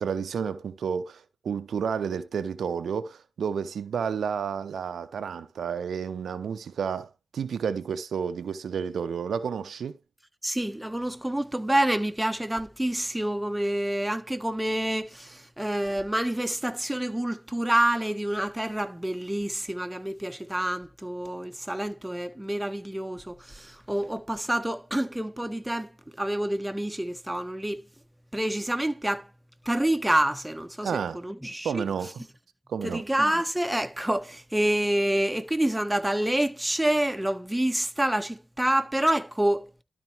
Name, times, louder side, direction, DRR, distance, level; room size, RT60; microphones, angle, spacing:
voice 1, 0.0-7.1 7.3-9.9 30.8-31.2 31.6-32.1 32.7-33.0, right 7 dB, 80° right, 0.7 m, -31 dB
voice 2, 10.4-25.9 26.2-27.8 28.3-29.3 29.6-31.8 32.8-39.7, right 1 dB, 10° right, 1.2 m, -27 dB
12.5 x 4.3 x 4.5 m
supercardioid pair, 40°, 0 cm